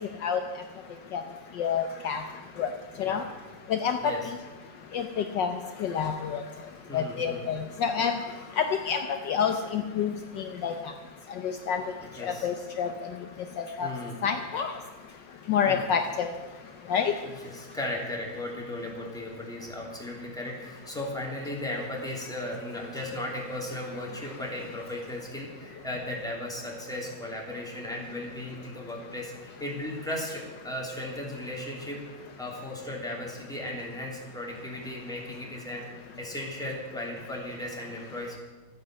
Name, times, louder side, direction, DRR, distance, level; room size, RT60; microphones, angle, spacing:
voice 1, 1.6-2.2 2.6-2.7 3.0-3.2 3.7-4.1 4.9-5.1 5.3-5.5 5.8-6.4 6.9-8.2 8.6-9.0 9.3-10.1 10.4-10.7 11.4-11.8 12.2-12.9 13.8-13.9 14.2-14.7 15.5-16.3 16.9-17.1, left 7 dB, 70° left, 6 dB, 1.4 m, -27 dB
voice 2, 2.9-3.3 4.0-4.3 6.9-7.5 12.0-12.5 13.8-14.2 15.6-15.8 17.2-32.0 32.4-35.9 36.2-38.4, left 1 dB, ahead, -2 dB, 2.8 m, -36 dB
13.5 x 9.7 x 7.6 m, 1.3 s
omnidirectional pair, 2.2 m